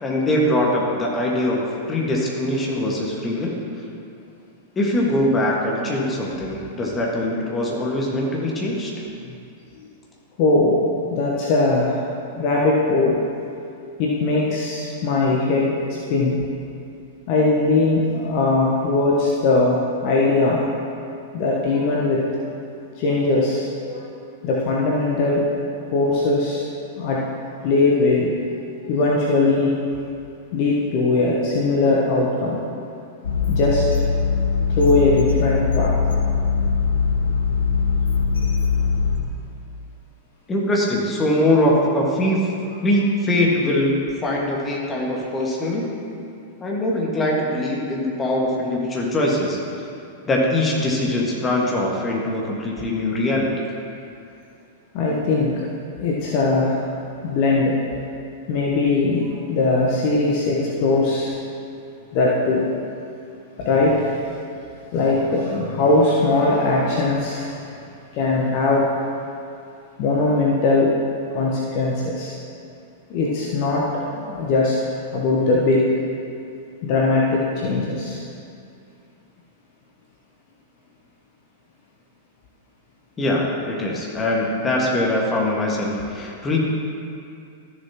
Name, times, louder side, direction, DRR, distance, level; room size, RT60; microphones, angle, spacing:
voice 1, 0.0-3.5 4.7-8.9 40.5-42.5 42.8-45.9 46.6-49.6 50.3-53.6 83.2-86.6, left 1 dB, 20° left, -3 dB, 1.7 m, -22 dB
voice 2, 10.4-12.0 12.4-13.2 14.0-15.8 16.1-16.4 17.3-20.7 21.3-22.4 23.0-24.0 24.4-25.5 25.9-26.6 27.0-27.3 27.6-28.3 28.8-29.8 30.5-32.6 33.5-33.8 34.8-36.3 54.9-55.6 56.0-56.8 57.2-57.8 58.5-61.3 62.1-62.7 63.6-64.1 64.9-67.5 68.1-68.9 70.0-71.0 71.3-72.4 73.1-74.8 75.1-75.9 76.8-78.2, left 3 dB, 45° left, -3 dB, 1.1 m, -20 dB
sound 1, 33.2-39.2, left 5 dB, 70° left, 1.0 m, -21 dB
13.0 x 6.9 x 3.0 m, 2.5 s
figure-of-eight pair, 95°, 0 cm